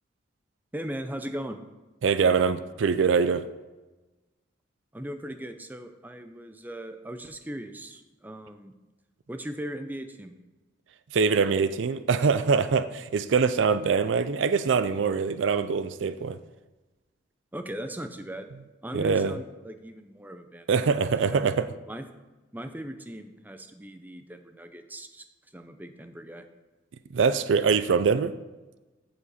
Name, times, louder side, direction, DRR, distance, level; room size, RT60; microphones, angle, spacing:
voice 1, 0.7-1.6 4.9-8.7 9.3-10.3 17.5-18.5 18.8-20.9 21.3-21.5 21.9-22.1 22.5-25.3 25.5-26.4, right 1 dB, 10° right, 8 dB, 0.6 m, -38 dB
voice 2, 2.0-3.5 11.1-16.4 18.9-19.4 20.7-21.7 27.1-28.3, right 5 dB, 75° right, 12 dB, 0.4 m, -23 dB
14.5 x 5.0 x 4.2 m, 1.1 s
head